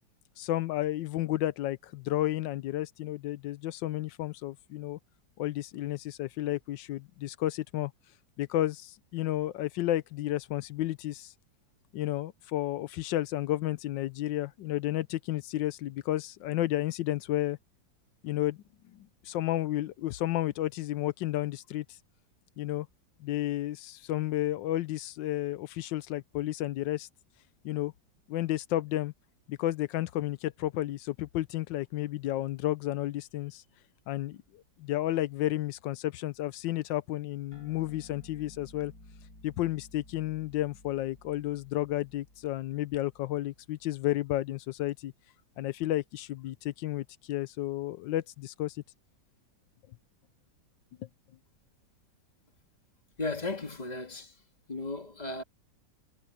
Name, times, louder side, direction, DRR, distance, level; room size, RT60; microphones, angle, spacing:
voice 1, 0.4-5.0 5.4-7.9 8.4-11.3 11.9-17.6 18.2-18.6 18.9-21.8 22.6-22.9 23.2-27.1 27.6-27.9 28.3-29.1 29.5-33.6 34.1-38.9 39.4-45.1 45.6-48.8, left 14 dB, 90° left, 1.4 m, -32 dB
sound 1, 37.5-44.3, left 1 dB, 50° left, 7.6 m, -55 dB
voice 2, 53.2-54.4 54.7-55.4, left 2 dB, 25° left, 2.0 m, -35 dB
omnidirectional pair, 1.9 m